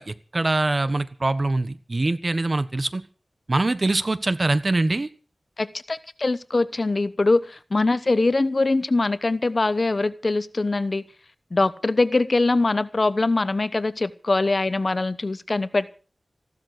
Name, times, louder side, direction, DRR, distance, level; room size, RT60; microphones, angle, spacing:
voice 1, 0.0-3.0 3.5-5.1, right 2 dB, 45° right, 13 dB, 1.2 m, -23 dB
voice 2, 5.6-11.0 11.5-15.9, left 3 dB, 50° left, 15 dB, 0.9 m, -22 dB
15.0 x 12.5 x 6.6 m, 0.38 s
wide cardioid pair, 70°, 0 cm